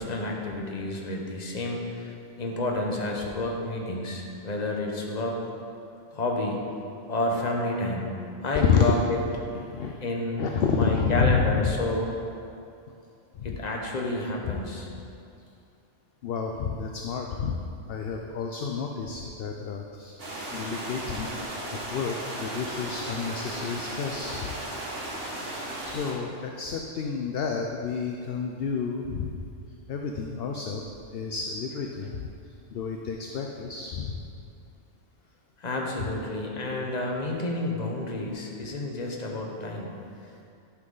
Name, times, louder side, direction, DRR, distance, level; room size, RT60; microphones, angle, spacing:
voice 1, 0.0-2.1 2.4-5.4 6.1-6.6 7.1-8.1 8.4-9.2 10.0-10.4 10.7-12.1 13.4-14.9 35.6-39.9, left 2 dB, 35° left, 0 dB, 1.0 m, -30 dB
voice 2, 8.5-9.0 9.5-9.9 10.4-11.7 13.4-13.6 14.5-14.6 16.2-17.6 17.9-20.2 20.5-21.4 21.7-24.5 25.8-29.4 29.9-30.8 31.1-32.1 32.7-34.2 36.0-36.1, left 5 dB, 60° left, 2 dB, 0.7 m, -29 dB
sound 1, 20.2-26.1, right 1 dB, 55° right, 1.5 m, -35 dB
10.5 x 5.9 x 3.9 m, 2.6 s
omnidirectional pair, 1.3 m